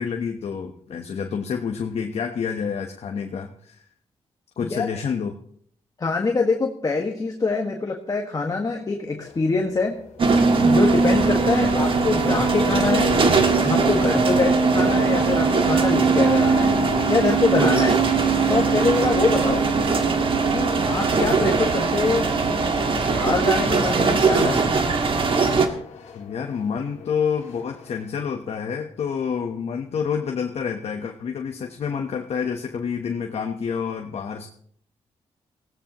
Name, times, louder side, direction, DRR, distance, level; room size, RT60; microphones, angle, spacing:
voice 1, 0.0-3.8 4.6-5.4 11.6-11.8 14.3-14.5 26.1-34.5, left 6 dB, 65° left, 3 dB, 1.1 m, -28 dB
voice 2, 6.0-10.0 10.6-13.2 13.6-16.8 17.1-18.0 18.5-19.6 20.5-22.3 23.1-24.7, left 3 dB, 35° left, 1 dB, 1.6 m, -24 dB
sound 1, 9.2-28.3, left 7 dB, 85° left, 2.0 m, -35 dB
sound 2, 10.2-25.7, right 4 dB, 50° right, 1.7 m, -20 dB
20.0 x 16.0 x 3.0 m, 0.65 s
cardioid pair, 90°, 11 cm